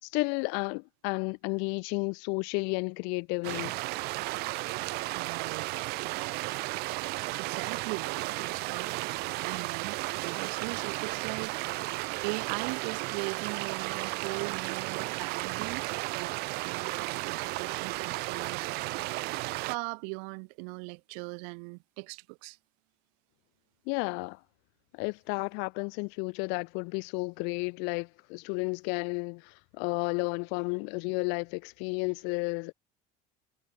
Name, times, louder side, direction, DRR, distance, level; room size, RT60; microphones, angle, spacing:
voice 1, 0.0-3.7 23.9-24.4 24.9-32.7, left 35 dB, 75° left, 3.4 m, -32 dB
sound 1, 3.4-19.8, right 23 dB, 65° right, 1.2 m, -34 dB
voice 2, 5.1-5.7 7.4-11.5 12.2-15.8 16.1-18.7 19.6-22.6, right 40 dB or more, 85° right, 5.0 m, -40 dB
cardioid pair, 155°, 18 cm